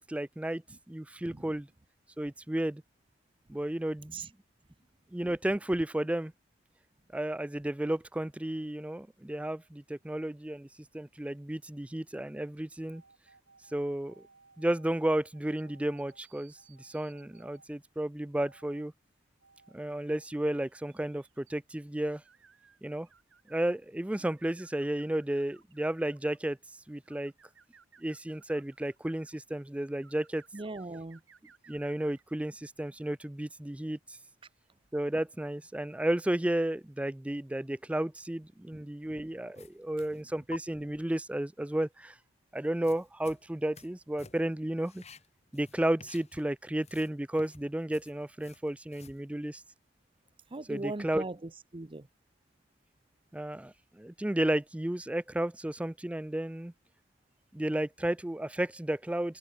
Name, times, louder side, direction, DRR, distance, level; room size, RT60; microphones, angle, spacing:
voice 1, 0.0-0.6 0.9-1.7 2.2-2.8 3.5-4.2 5.1-6.3 7.1-10.7 10.9-13.0 13.7-14.2 14.6-18.9 19.7-22.2 22.8-23.1 23.5-26.6 26.9-27.3 28.0-30.4 31.7-34.2 34.9-42.2 42.5-45.0 45.5-49.6 50.7-51.2 53.3-56.7 57.5-59.4, right 1 dB, 5° right, 0.4 m, -33 dB
sound 1, 12.7-17.7 18.3-18.9 19.4-19.8 20.1-23.7 24.1-26.5 27.0-29.4 30.0-32.2, right 5 dB, 80° right, 4.7 m, -61 dB
voice 2, 30.5-31.2 38.7-39.2 50.5-52.1, right 2 dB, 25° right, 0.8 m, -40 dB
Chopping onion, 39.5-40.2 40.5-40.6 42.6-43.9 44.2-44.5 44.8-46.5 46.8-49.2, left 5 dB, 35° left, 2.4 m, -52 dB
head